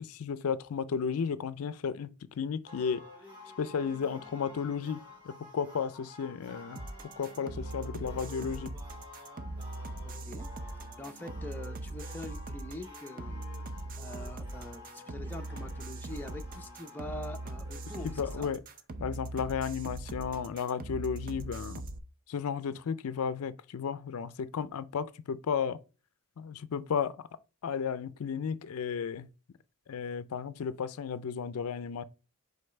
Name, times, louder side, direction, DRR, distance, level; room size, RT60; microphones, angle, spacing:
voice 1, 0.0-3.0 3.6-6.8 7.2-8.7 18.0-18.6 19.0-21.8 22.3-25.8 26.4-27.2 27.6-29.3 29.9-32.0, left 6 dB, 70° left, 0.4 m, -33 dB
sound 1, 2.7-18.5, left 2 dB, 20° right, 1.9 m, -51 dB
sound 2, 6.8-22.0, right 2 dB, 40° right, 0.6 m, -41 dB
voice 2, 10.0-18.5, left 1 dB, 10° left, 0.6 m, -45 dB
5.2 x 3.9 x 5.6 m
head